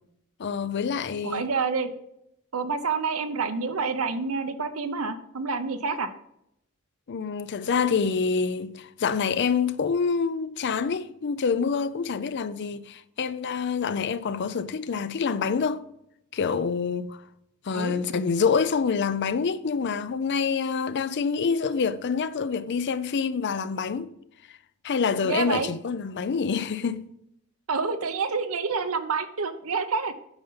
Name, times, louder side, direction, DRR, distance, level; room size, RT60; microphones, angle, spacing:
voice 1, 0.4-1.4 7.1-15.8 16.3-17.2 17.7-24.1 24.8-27.1, left 5 dB, 55° left, 0.5 m, -26 dB
voice 2, 1.2-1.9 2.5-6.1 17.7-17.9 25.2-25.7 27.7-30.1, right 4 dB, 75° right, 0.8 m, -28 dB
8.9 x 5.3 x 5.6 m
head